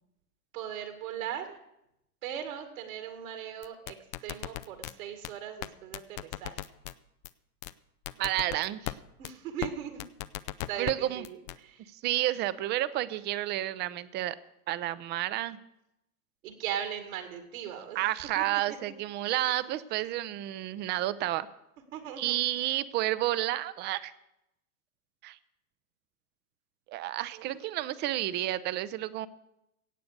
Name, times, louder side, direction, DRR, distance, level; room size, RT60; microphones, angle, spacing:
voice 1, 0.5-1.6 2.2-4.0 4.2-6.7 9.2-10.0 10.7-11.9 16.4-18.0 18.4-18.5 19.3-19.6 21.9-22.4 27.3-27.6, right 9 dB, 65° right, 6 dB, 2.3 m, -39 dB
sound 1, 3.6-4.9 5.2-5.3 5.6-5.7 5.9-6.9 7.2-7.3 7.6-7.7 8.1-8.9 9.2-9.3 9.6-9.7 10.0-10.9 11.2-11.6, left 16 dB, 30° left, 0.4 m, -36 dB
voice 2, 8.2-8.9 10.8-11.3 11.9-14.4 14.7-15.6 17.9-21.5 22.2-24.1 25.2-25.4 26.9-29.3, right 14 dB, 25° right, 16 dB, 0.5 m, -30 dB
17.0 x 7.8 x 6.7 m, 0.82 s
hypercardioid pair, 115°, 46 cm